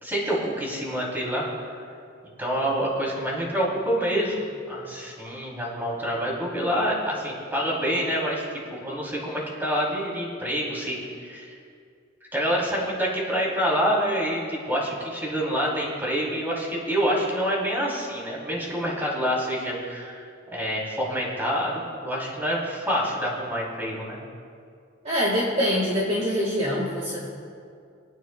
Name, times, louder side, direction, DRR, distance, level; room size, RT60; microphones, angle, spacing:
voice 1, 0.0-1.5 2.4-4.3 4.7-8.4 8.7-11.6 12.3-20.3 20.5-24.2, equal, 10° right, -5 dB, 3.0 m, -27 dB
voice 2, 25.0-27.3, equal, 35° right, -4 dB, 1.6 m, -24 dB
27.0 x 9.1 x 2.2 m, 2.3 s
head